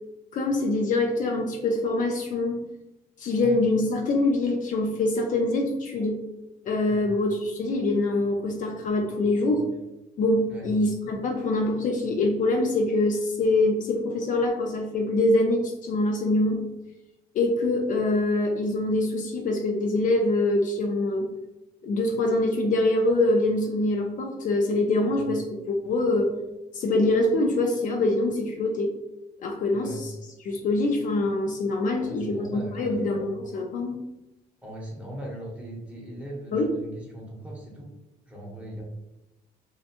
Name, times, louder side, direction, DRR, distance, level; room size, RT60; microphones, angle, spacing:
voice 1, 0.3-2.6 3.2-6.2 6.6-9.6 10.2-16.6 17.3-21.3 21.8-26.3 26.7-28.9 29.4-30.1 30.4-34.0 36.5-36.7, left 2 dB, 50° left, 2 dB, 0.4 m, -24 dB
voice 2, 29.7-30.0 32.0-33.3 34.6-37.9 38.3-38.8, equal, 10° right, -3 dB, 0.9 m, -39 dB
2.8 x 2.1 x 2.5 m, 0.98 s
cardioid pair, 110°, 17 cm